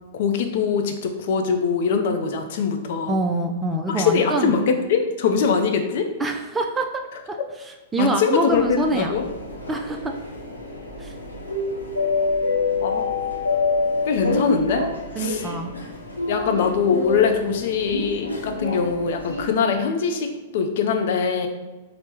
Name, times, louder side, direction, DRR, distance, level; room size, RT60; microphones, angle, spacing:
voice 1, 0.1-3.1 3.9-6.1 8.0-9.3 12.8-13.1 14.1-14.9 15.2-15.4 16.3-21.5, left 6 dB, 55° left, 5 dB, 0.4 m, -22 dB
voice 2, 3.1-4.5 6.2-7.0 7.3-7.4 7.9-9.2 9.7-10.1 11.0-11.1 15.2-15.7, right 2 dB, 15° right, 3 dB, 0.3 m, -25 dB
sound 1, 8.5-19.5, left 3 dB, 85° left, 0.7 m, -27 dB
4.3 x 2.0 x 3.0 m, 1.2 s
figure-of-eight pair, 105°, 0 cm